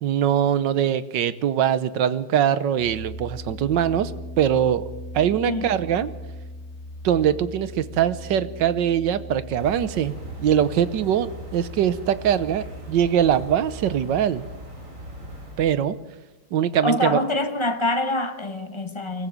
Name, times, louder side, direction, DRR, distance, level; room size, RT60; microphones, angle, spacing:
voice 1, 0.0-4.1 4.4-4.8 5.1-6.1 7.0-14.4 15.6-16.0 16.5-17.2, right 9 dB, 70° right, 15 dB, 1.5 m, -22 dB
sound 1, 2.8-14.0, left 1 dB, 50° left, 3.1 m, -39 dB
sound 2, 9.6-15.9, right 1 dB, 40° right, 3.7 m, -40 dB
voice 2, 16.8-19.3, left 1 dB, 15° left, 9 dB, 1.1 m, -25 dB
24.0 x 15.0 x 7.5 m, 1.1 s
omnidirectional pair, 2.2 m